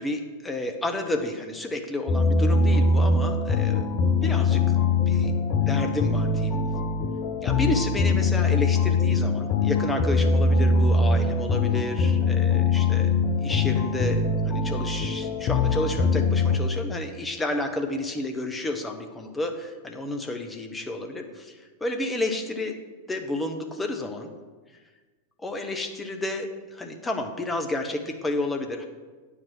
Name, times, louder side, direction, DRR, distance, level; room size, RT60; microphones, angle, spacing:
voice 1, 0.0-3.9 4.2-4.6 5.1-5.3 5.6-6.6 7.4-13.1 13.4-22.8 23.1-24.3 25.4-28.8, left 1 dB, 10° left, 4 dB, 1.0 m, -31 dB
sound 1, 2.1-16.6, left 3 dB, 40° left, 0.8 m, -22 dB
9.1 x 4.9 x 6.4 m, 1.3 s
figure-of-eight pair, 90°, 0 cm